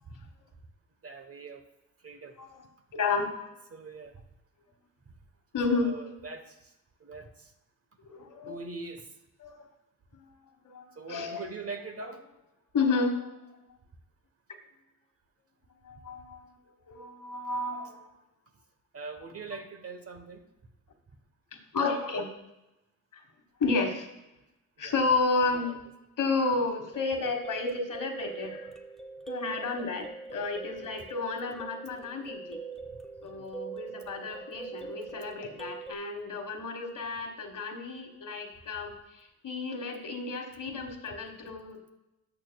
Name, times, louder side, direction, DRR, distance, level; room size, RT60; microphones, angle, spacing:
voice 1, 1.0-1.6 2.0-2.4 3.7-4.2 5.7-6.7 7.0-7.5 8.5-9.1 11.0-12.2 18.9-20.4 24.8-25.0 25.5-25.8 29.4-29.6 33.2-33.5, right 4 dB, 40° right, 6 dB, 1.1 m, -42 dB
voice 2, 2.9-3.5 5.5-5.9 8.0-8.6 9.4-9.7 10.7-11.4 12.0-12.1 12.7-13.3 15.8-16.6 16.9-18.1 21.7-22.3 23.6-24.1 24.8-25.7 26.2-28.8 29.3-32.6 33.2-41.8, left 3 dB, 60° left, 5 dB, 1.5 m, -31 dB
sound 1, 26.7-35.9, right 4 dB, ahead, 0.8 m, -42 dB
12.5 x 6.9 x 2.3 m, 0.91 s
cardioid pair, 75°, 36 cm